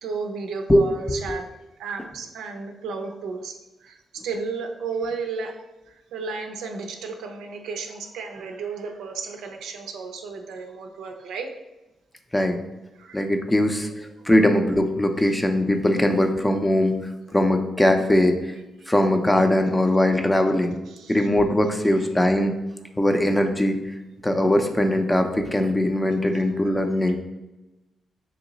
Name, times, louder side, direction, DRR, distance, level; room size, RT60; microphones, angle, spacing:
voice 1, 0.0-1.5 1.8-5.6 5.9-11.5 13.0-13.2 13.7-13.8 14.2-14.3 15.3-15.4 18.8-18.9 20.9-21.3 22.0-22.1 26.3-26.7 27.0-27.1, right 4 dB, 85° right, 4 dB, 0.4 m, -34 dB
voice 2, 0.7-1.4 12.3-12.6 13.1-13.9 14.3-16.9 17.3-18.4 18.9-20.7 21.1-22.5 23.0-23.8 24.2-27.2, left 1 dB, 15° left, 6 dB, 0.5 m, -20 dB
3.0 x 2.8 x 3.9 m, 1.0 s
cardioid pair, 65°, 0 cm